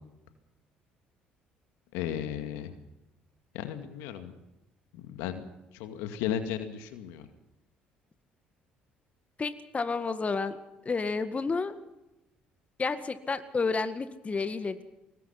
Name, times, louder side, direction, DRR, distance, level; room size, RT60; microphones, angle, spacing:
voice 1, 1.9-2.8 3.5-4.3 4.9-5.4 5.7-7.3, left 10 dB, 75° left, 8 dB, 2.2 m, -35 dB
voice 2, 9.4-10.6 10.9-11.8 12.8-14.8, left 4 dB, 30° left, 11 dB, 1.9 m, -30 dB
24.0 x 20.0 x 5.9 m, 0.94 s
hypercardioid pair, 55°, 4 cm